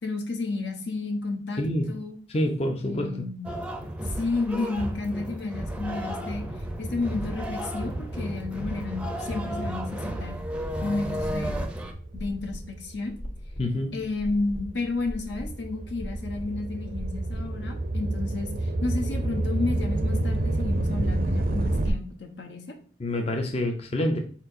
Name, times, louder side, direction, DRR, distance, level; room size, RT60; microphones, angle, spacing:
voice 1, 0.0-1.6 1.9-2.2 2.8-3.5 4.0-6.5 6.8-10.4 10.8-11.6 12.1-13.2 13.9-22.7, left 3 dB, 80° left, 4 dB, 0.9 m, -31 dB
voice 2, 1.6-1.9 2.3-3.3 13.6-13.9 23.0-24.2, left 1 dB, 35° left, 3 dB, 0.5 m, -27 dB
sound 1, 3.4-11.9, right 1 dB, 5° right, 0.5 m, -33 dB
sound 2, 6.6-13.3 13.9-21.9, right 2 dB, 55° right, 0.5 m, -30 dB
sound 3, 10.5-17.9, equal, 55° left, 1.0 m, -40 dB
4.6 x 4.4 x 2.5 m, 0.43 s
head